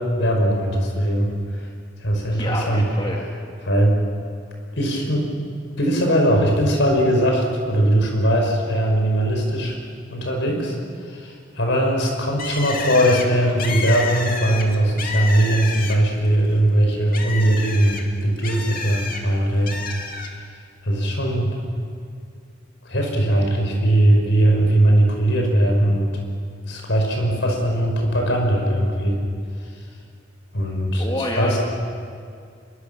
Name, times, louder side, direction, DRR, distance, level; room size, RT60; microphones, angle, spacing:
voice 1, 0.0-1.7 2.0-2.8 3.6-4.0 4.8-5.3 5.8-9.8 10.1-10.8 11.0-19.8 20.8-21.7 22.8-26.1 26.7-29.2 30.5-31.6, right 1 dB, 70° left, 2 dB, 5.5 m, -20 dB
voice 2, 2.3-3.2 31.0-31.6, left 1 dB, 25° left, -1 dB, 2.2 m, -27 dB
Bird, 12.4-16.2 16.6-19.2 19.7-20.3, left 4 dB, 50° left, 2.4 m, -30 dB
25.0 x 23.0 x 7.0 m, 2.3 s
head